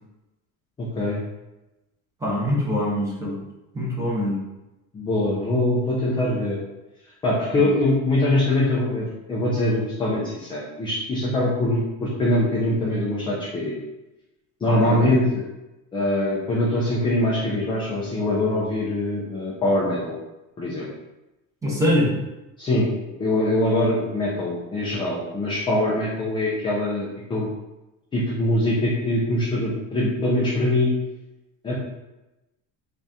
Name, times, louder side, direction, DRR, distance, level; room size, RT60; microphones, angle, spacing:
voice 1, 0.8-1.2 4.9-6.6 7.2-13.7 14.6-15.5 15.9-20.2 20.6-20.9 22.6-22.9 23.2-27.5 28.1-30.9 31.6-31.7, left 1 dB, 15° left, -6 dB, 0.3 m, -23 dB
voice 2, 2.2-3.4 3.7-4.4 7.6-7.7 14.7-15.1 21.6-22.2, left 1 dB, 10° right, -5 dB, 0.8 m, -23 dB
4.1 x 2.5 x 3.4 m, 0.98 s
cardioid pair, 170°, 40 cm